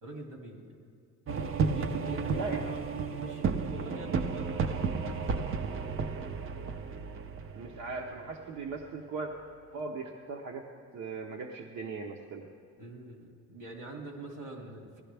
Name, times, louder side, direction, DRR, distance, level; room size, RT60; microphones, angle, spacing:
voice 1, 0.0-0.9 1.7-5.7 12.8-15.0, right 1 dB, 90° right, 1 dB, 2.4 m, -44 dB
sound 1, 1.3-8.8, right 5 dB, 45° right, 0.6 m, -33 dB
voice 2, 2.3-2.7 7.5-9.3 9.7-10.6 10.9-12.5, right 4 dB, 70° right, 0 dB, 1.0 m, -38 dB
17.0 x 11.5 x 3.4 m, 2.5 s
cardioid pair, 90°, 30 cm